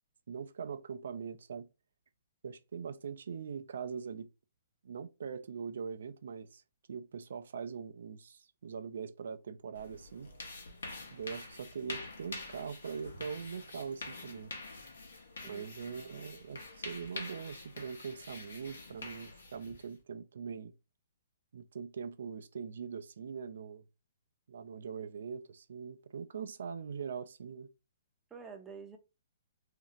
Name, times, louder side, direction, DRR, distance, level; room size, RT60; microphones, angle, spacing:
voice 1, 0.3-1.7 2.4-4.3 4.8-6.6 6.9-10.3 11.1-14.5 15.5-20.7 21.5-23.8 24.5-27.7, right 6 dB, 70° right, 0.3 m, -42 dB
sound 1, 9.7-20.0, left 3 dB, 80° left, 0.8 m, -46 dB
voice 2, 15.4-16.4 28.3-29.0, right 5 dB, 15° right, 0.5 m, -50 dB
2.5 x 2.0 x 3.8 m
hypercardioid pair, 135°, 0 cm